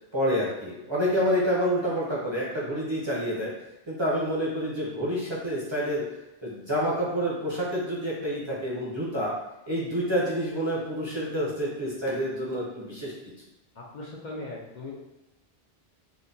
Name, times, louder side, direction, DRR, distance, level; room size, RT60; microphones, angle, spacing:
voice 1, 0.1-3.5 3.9-6.0 6.4-9.3 9.7-13.1, equal, 30° right, -6 dB, 0.6 m, -28 dB
voice 2, 13.8-14.9, left 2 dB, 55° left, -4 dB, 0.6 m, -39 dB
3.7 x 2.1 x 2.6 m, 0.97 s
omnidirectional pair, 1.0 m